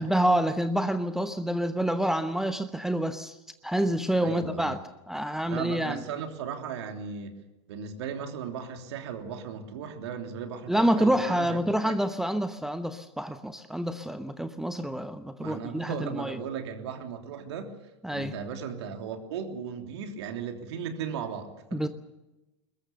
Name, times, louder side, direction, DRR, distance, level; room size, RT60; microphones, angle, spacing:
voice 1, 0.0-3.4 3.6-4.8 5.1-6.0 10.7-16.4 18.0-18.3 21.7-21.9, right 1 dB, 5° right, 10 dB, 1.0 m, -27 dB
voice 2, 4.2-4.7 5.4-7.3 7.7-12.0 15.4-17.7 18.1-21.8, right 7 dB, 60° right, 4 dB, 3.2 m, -36 dB
22.5 x 21.0 x 6.9 m, 1.0 s
figure-of-eight pair, 95°, 16 cm